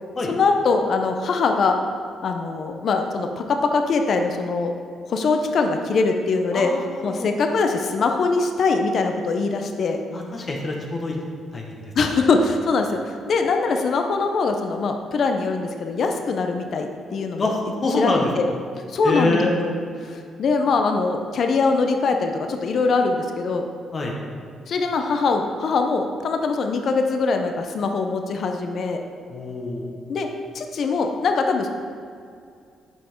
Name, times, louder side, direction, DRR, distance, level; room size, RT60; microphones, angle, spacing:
voice 1, 0.3-1.8 2.2-4.7 5.1-6.7 7.0-10.0 12.0-17.4 18.0-18.5 18.9-23.6 24.7-29.0 30.1-30.3 30.5-31.7, left 4 dB, 60° left, 5 dB, 0.7 m, -22 dB
voice 2, 6.5-7.3 10.1-11.1 11.5-11.7 17.4-18.3 19.0-19.5 23.9-24.2 29.3-29.9, left 2 dB, 40° left, 0 dB, 1.1 m, -25 dB
8.5 x 5.4 x 4.5 m, 2.3 s
cardioid pair, 90°, 0 cm